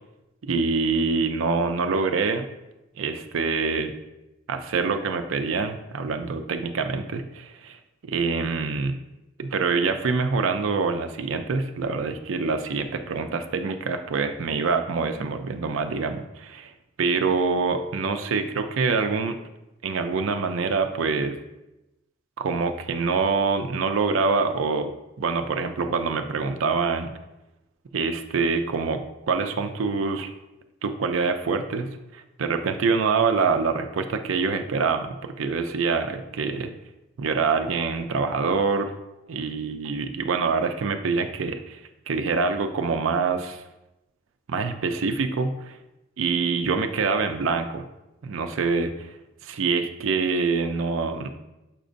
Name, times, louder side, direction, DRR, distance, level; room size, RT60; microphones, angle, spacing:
voice 1, 0.5-2.5 3.0-3.9 4.5-7.8 8.1-9.0 9.4-16.7 17.0-19.4 19.8-21.4 22.4-24.9 25.2-27.1 27.9-30.3 30.8-36.7 37.2-38.9 39.3-41.8 42.1-43.6 44.5-45.8 46.2-47.9 48.2-49.1 49.4-51.3, right 4 dB, 80° right, 7 dB, 0.5 m, -25 dB
7.3 x 5.0 x 2.6 m, 0.97 s
head